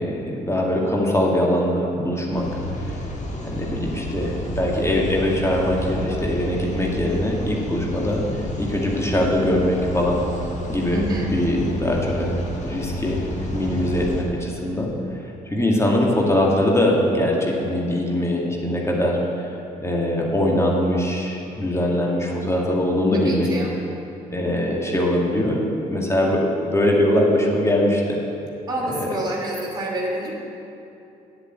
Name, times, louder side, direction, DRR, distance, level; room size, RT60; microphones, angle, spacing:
voice 1, 0.0-2.5 2.8-3.0 3.4-8.2 8.6-10.2 10.7-12.4 12.6-13.2 13.5-14.9 15.5-19.5 19.8-23.5 24.3-28.2 28.9-29.1, left 1 dB, 15° left, -2 dB, 2.3 m, -22 dB
sound 1, 2.3-14.2, left 1 dB, 35° left, 1.7 m, -30 dB
voice 2, 10.9-11.3 23.2-23.7 28.7-30.3, right 1 dB, 20° right, -5 dB, 2.6 m, -27 dB
8.9 x 7.9 x 7.7 m, 2.7 s
figure-of-eight pair, 45°, 20 cm